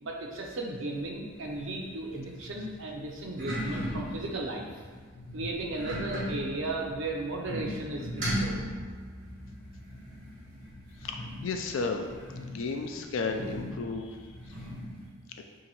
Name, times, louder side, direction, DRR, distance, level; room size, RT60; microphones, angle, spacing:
voice 1, 0.0-4.7 5.3-8.6 14.5-14.7, right 2 dB, 70° right, 0 dB, 0.6 m, -35 dB
sound 1, 0.9-15.1, equal, 40° right, 1.3 m, -39 dB
voice 2, 11.0-12.1 12.4-14.2, left 4 dB, 75° left, 4 dB, 0.4 m, -33 dB
2.9 x 2.6 x 4.2 m, 1.5 s
head